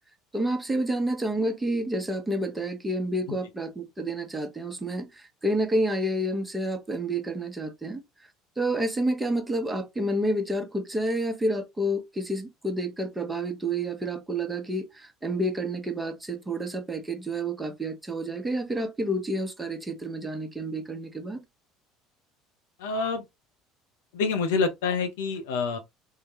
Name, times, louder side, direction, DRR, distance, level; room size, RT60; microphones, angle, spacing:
voice 1, 0.3-8.0 8.6-21.4, right 1 dB, 15° right, 1.0 m, -29 dB
voice 2, 22.8-23.2 24.1-25.8, left 4 dB, 75° left, 0.7 m, -27 dB
3.7 x 2.3 x 2.8 m
hypercardioid pair, 65°, 0 cm